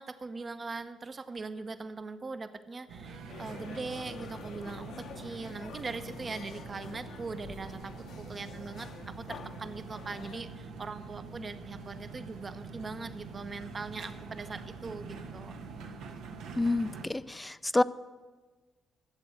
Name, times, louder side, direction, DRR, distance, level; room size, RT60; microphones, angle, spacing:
voice 1, 0.0-15.5, right 3 dB, 35° right, 11 dB, 0.8 m, -41 dB
sound 1, 2.9-17.1, right 4 dB, 85° right, 1.1 m, -45 dB
sound 2, 3.3-10.4, left 6 dB, 70° left, 0.9 m, -48 dB
voice 2, 16.6-17.8, left 2 dB, 15° left, 15 dB, 0.4 m, -28 dB
12.0 x 7.8 x 7.8 m, 1.3 s
cardioid pair, 90°, 0 cm